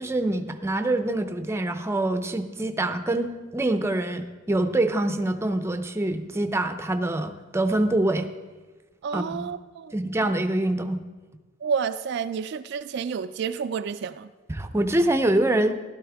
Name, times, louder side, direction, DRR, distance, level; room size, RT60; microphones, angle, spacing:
voice 1, 0.0-8.3 9.1-9.5 9.9-11.0 14.5-15.7, right 1 dB, 15° right, 8 dB, 0.6 m, -25 dB
voice 2, 9.0-9.9 11.6-14.3, right 6 dB, 60° right, 10 dB, 0.3 m, -30 dB
14.0 x 12.0 x 3.5 m, 1.2 s
head